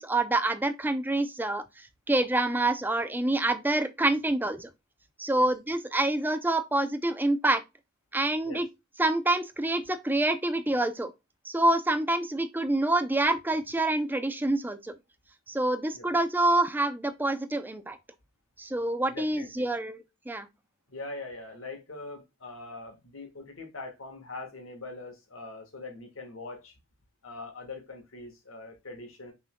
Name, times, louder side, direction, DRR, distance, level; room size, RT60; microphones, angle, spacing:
voice 1, 0.0-4.7 5.2-7.6 8.1-8.7 9.0-11.1 11.4-14.9 15.5-18.0 18.6-20.5, right 2 dB, 10° right, 0.5 m, -27 dB
voice 2, 19.1-19.7 20.9-26.7 27.2-29.3, left 3 dB, 80° left, 1.6 m, -42 dB
6.1 x 3.7 x 2.2 m
head